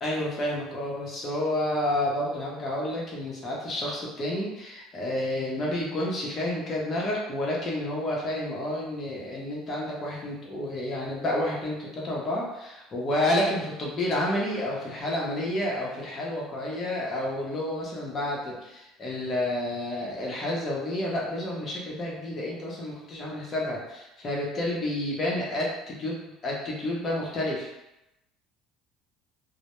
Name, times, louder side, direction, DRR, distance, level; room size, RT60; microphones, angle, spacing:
voice 1, 0.0-26.2 26.4-27.7, left 1 dB, 35° left, -3 dB, 0.7 m, -30 dB
2.1 x 2.0 x 2.9 m, 0.90 s
cardioid pair, 125°, 0 cm